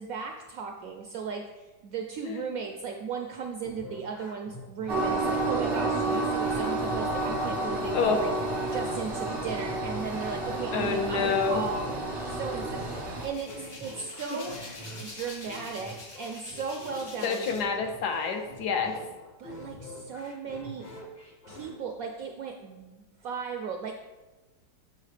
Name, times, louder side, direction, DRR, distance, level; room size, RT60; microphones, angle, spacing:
voice 1, 0.0-8.4 8.7-11.9 12.3-14.6 15.0-17.5 19.4-20.8 21.5-23.9, right 5 dB, 75° right, 3 dB, 0.8 m, -36 dB
sound 1, 3.6-21.7, equal, 40° left, 0.6 m, -45 dB
Train, 4.9-13.3, right 2 dB, 30° right, 0.5 m, -30 dB
voice 2, 10.7-11.6 17.2-19.0, left 5 dB, 70° left, 5 dB, 1.1 m, -27 dB
Hands, 12.8-17.8 18.1-19.0, left 1 dB, 90° left, 2.3 m, -44 dB
6.7 x 5.6 x 3.2 m, 1.1 s
omnidirectional pair, 1.9 m